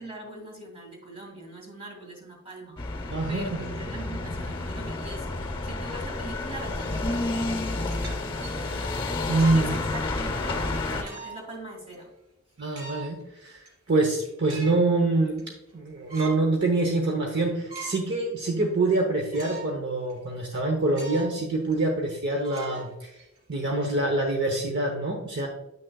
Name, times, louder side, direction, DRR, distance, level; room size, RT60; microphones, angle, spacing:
voice 1, 0.0-2.8 3.3-9.0 9.5-12.1, right 1 dB, 30° right, 0 dB, 2.3 m, -42 dB
sound 1, 2.8-11.0, left 2 dB, 25° left, 0.9 m, -30 dB
voice 2, 3.1-3.5 9.3-9.7 12.6-13.6 13.9-23.1 23.5-25.5, right 2 dB, 55° right, 2 dB, 0.9 m, -25 dB
sound 2, 7.9-9.7 10.2-10.4 11.0-11.6 11.9-12.0 12.6-13.2 13.6-13.7 14.1-14.9 15.2-15.8 16.1-16.4 16.9-17.0 17.4-18.1 18.5-18.6 19.3-19.8 20.1-20.2 20.9-21.4 21.7-21.8 22.4-23.4, right 3 dB, 85° right, 2.6 m, -41 dB
9.1 x 6.3 x 2.3 m, 0.92 s
head